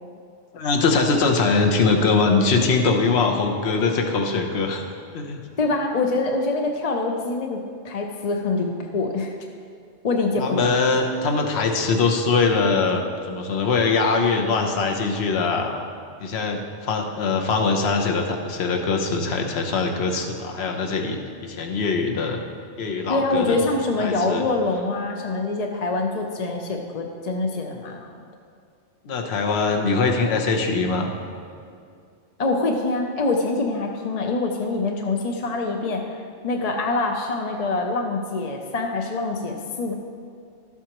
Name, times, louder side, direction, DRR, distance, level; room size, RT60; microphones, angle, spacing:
voice 1, 0.5-4.8 5.1-5.4 10.4-15.9 16.2-22.4 22.8-23.6 24.0-24.5 29.0-31.1, left 4 dB, 60° left, 3 dB, 1.1 m, -22 dB
voice 2, 5.6-9.3 10.0-10.7 23.1-28.1 32.4-39.9, left 3 dB, 45° left, 2 dB, 0.6 m, -25 dB
12.5 x 8.1 x 3.0 m, 2.4 s
omnidirectional pair, 1.3 m